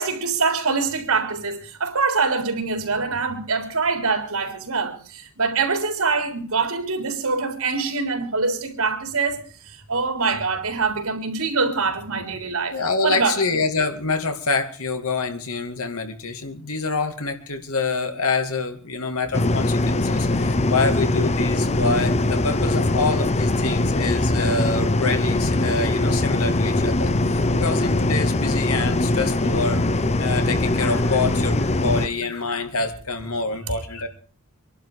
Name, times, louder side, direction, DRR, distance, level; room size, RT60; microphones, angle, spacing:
voice 1, 0.0-12.8 13.0-13.6 30.4-30.5 33.7-33.8, right 4 dB, 80° right, 3.7 m, -24 dB
voice 2, 12.7-29.8 30.2-34.1, left 4 dB, 80° left, 2.4 m, -26 dB
sound 1, 19.3-32.1, left 2 dB, 30° left, 0.7 m, -21 dB
25.0 x 11.5 x 4.8 m
head